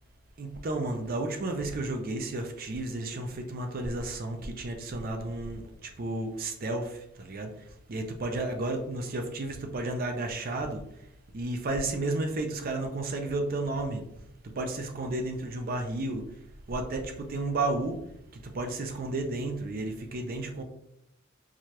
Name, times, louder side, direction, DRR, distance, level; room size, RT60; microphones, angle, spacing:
voice 1, 0.4-7.5 7.9-10.8 11.3-14.0 14.4-16.2 16.7-18.0 18.3-20.6, right 2 dB, 45° right, 4 dB, 0.5 m, -32 dB
4.7 x 2.3 x 2.9 m, 0.79 s
head